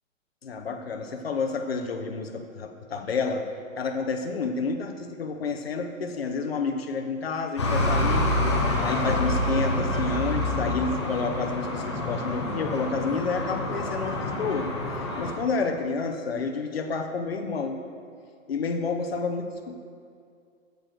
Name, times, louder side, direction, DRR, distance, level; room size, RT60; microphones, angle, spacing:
voice 1, 0.4-3.5 3.8-8.4 8.8-17.8 18.5-19.7, left 4 dB, 50° left, 4 dB, 0.9 m, -30 dB
sound 1, 7.6-15.3, left 1 dB, 20° left, 0.8 m, -27 dB
9.7 x 6.9 x 6.5 m, 2.3 s
hypercardioid pair, 180°, 40 cm